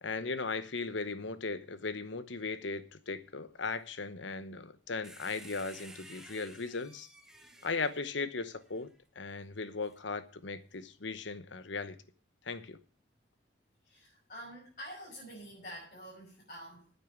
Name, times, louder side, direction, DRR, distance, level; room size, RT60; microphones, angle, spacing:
voice 1, 0.0-7.1 7.6-12.0 12.4-12.8, left 4 dB, 85° left, 1.0 m, -37 dB
sound 1, 5.0-8.8 9.8-10.0, right 1 dB, 5° right, 1.1 m, -54 dB
voice 2, 7.3-8.0 13.8-16.9, equal, 45° left, 5.9 m, -48 dB
9.3 x 9.0 x 8.2 m
head